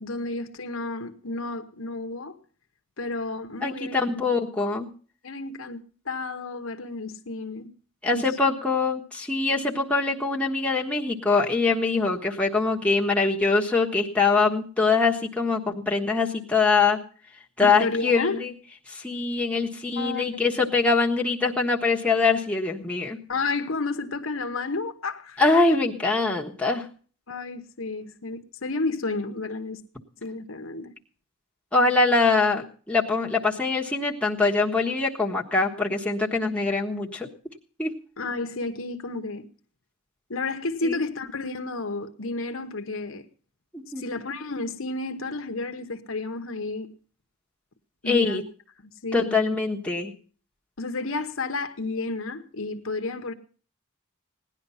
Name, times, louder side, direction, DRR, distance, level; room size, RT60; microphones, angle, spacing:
voice 1, 0.0-2.3 3.0-4.0 5.2-7.7 8.1-8.2 17.6-18.4 20.0-20.6 23.3-25.4 25.7-25.8 27.3-29.8 30.2-30.9 38.2-39.5 40.3-43.2 44.0-46.9 48.0-48.4 48.8-49.4 50.8-53.3, left 3 dB, 70° left, 1.0 m, -31 dB
voice 2, 3.6-4.9 8.0-17.0 17.6-18.5 18.9-23.2 25.4-26.8 31.7-37.3 37.8-37.9 40.8-41.0 43.7-44.1 48.1-48.4 49.1-50.1, left 3 dB, 5° left, 1.3 m, -23 dB
17.5 x 10.5 x 5.6 m
head